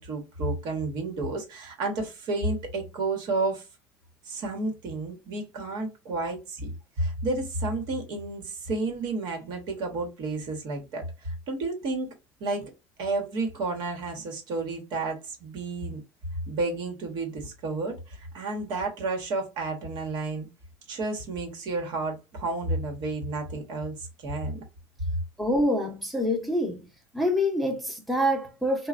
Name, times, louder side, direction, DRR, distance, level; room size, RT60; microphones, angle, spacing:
voice 1, 0.0-3.6 4.3-6.7 7.0-12.1 12.4-12.7 13.0-16.0 16.5-20.5 20.9-24.6, right 3 dB, 60° right, 1.2 m, -31 dB
voice 2, 25.4-26.9 27.1-28.9, equal, ahead, 0.9 m, -26 dB
3.1 x 2.2 x 2.5 m
supercardioid pair, 105°, 8 cm